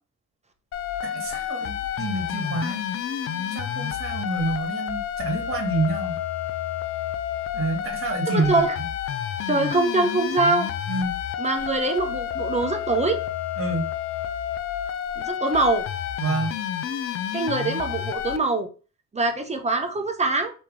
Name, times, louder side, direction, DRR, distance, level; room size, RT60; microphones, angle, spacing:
sound 1, 0.7-18.4, left 10 dB, 50° left, 0.5 m, -30 dB
voice 1, 1.0-2.8 3.3-6.2 7.5-8.6 10.9-11.2 13.6-13.9 16.2-16.6, right 2 dB, 45° right, 3 dB, 1.6 m, -28 dB
voice 2, 8.3-8.8 9.5-10.7 11.4-13.2 15.2-15.9 17.3-18.7 19.1-20.5, right 3 dB, 20° right, 5 dB, 1.0 m, -23 dB
3.4 x 3.1 x 4.7 m, 0.35 s
cardioid pair, 90°, 30 cm